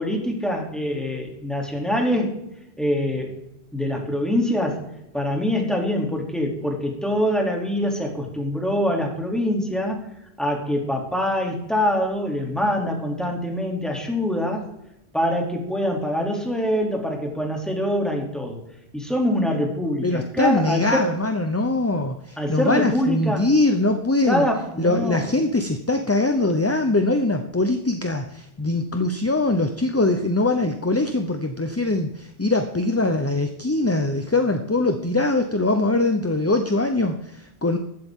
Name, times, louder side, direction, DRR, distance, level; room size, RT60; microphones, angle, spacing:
voice 1, 0.0-2.4 2.8-3.3 3.7-4.8 5.1-10.0 10.4-14.6 15.1-18.6 18.9-21.1 22.4-23.5 24.3-25.3, equal, ahead, 0 dB, 2.9 m, -24 dB
voice 2, 20.0-24.5 24.8-37.8, left 2 dB, 15° left, 6 dB, 0.7 m, -22 dB
15.5 x 12.5 x 3.7 m, 0.82 s
omnidirectional pair, 1.1 m